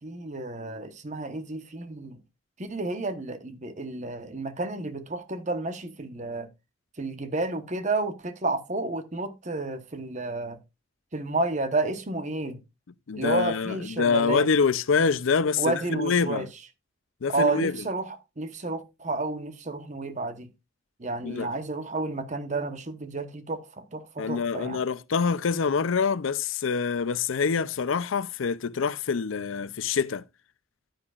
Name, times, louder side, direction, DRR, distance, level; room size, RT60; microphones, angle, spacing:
voice 1, 0.0-2.2 2.6-6.5 7.0-10.6 11.1-12.6 13.2-14.5 15.6-16.5 17.3-20.5 21.0-24.8, right 3 dB, 35° right, 1.1 m, -31 dB
voice 2, 13.1-16.5 17.2-17.8 21.2-21.5 24.2-30.2, left 5 dB, 80° left, 0.5 m, -25 dB
10.5 x 9.7 x 2.4 m
head